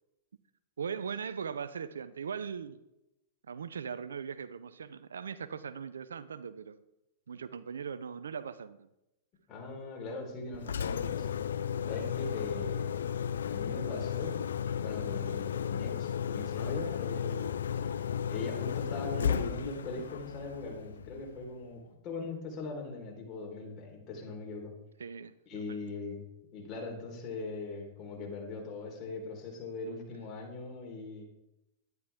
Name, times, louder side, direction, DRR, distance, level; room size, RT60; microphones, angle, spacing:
voice 1, 0.8-2.8 3.4-6.8 7.3-8.9 25.0-25.9, right 6 dB, 85° right, 0.6 m, -40 dB
voice 2, 9.5-11.3 11.9-13.1 13.4-14.4 14.8-17.9 18.2-24.7 25.5-26.2 26.5-31.2, left 3 dB, 35° left, 4.6 m, -40 dB
Engine, 10.5-21.5, left 8 dB, 80° left, 0.5 m, -34 dB
12.5 x 10.5 x 3.7 m
hypercardioid pair, 115°, 0 cm